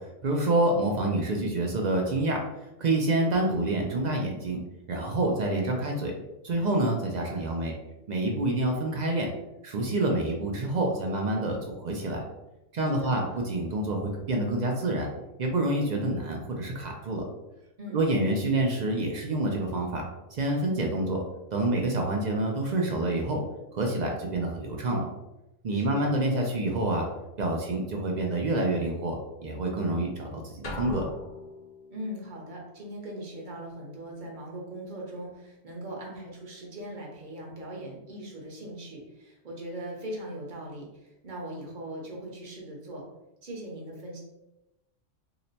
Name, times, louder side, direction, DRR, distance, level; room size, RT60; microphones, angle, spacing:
voice 1, 0.2-4.6 4.9-6.1 6.4-7.7 8.1-9.3 9.6-12.2 12.7-15.1 15.4-17.2 17.9-20.0 20.3-21.2 21.5-23.4 23.7-25.0 25.6-27.1 27.4-29.2 29.4-31.0, right 2 dB, 65° right, 1 dB, 0.4 m, -27 dB
voice 2, 12.8-13.4 17.8-18.0 25.7-26.1 31.9-43.0 43.4-44.2, right 1 dB, 45° right, -2 dB, 0.9 m, -40 dB
sound 1, 30.6-32.1, left 1 dB, 50° left, 0.6 m, -40 dB
2.9 x 2.1 x 3.9 m, 0.93 s
omnidirectional pair, 1.3 m